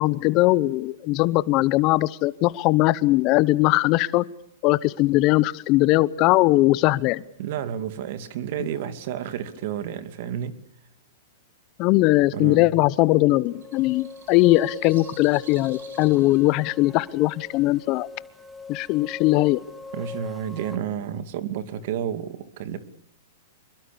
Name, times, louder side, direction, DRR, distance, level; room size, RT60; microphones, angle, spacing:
voice 1, 0.0-4.2 4.6-7.2 8.6-8.7 11.8-18.1 18.7-19.6, left 18 dB, 40° left, 18 dB, 0.9 m, -20 dB
voice 2, 7.4-10.6 12.3-12.8 19.9-22.8, right 9 dB, 55° right, 10 dB, 2.5 m, -31 dB
sound 1, 12.7-17.8, right 5 dB, 80° right, 6.3 m, -52 dB
sound 2, 13.5-20.8, left 4 dB, ahead, 2.0 m, -42 dB
26.0 x 22.5 x 7.0 m, 0.70 s
hypercardioid pair, 135°, 0 cm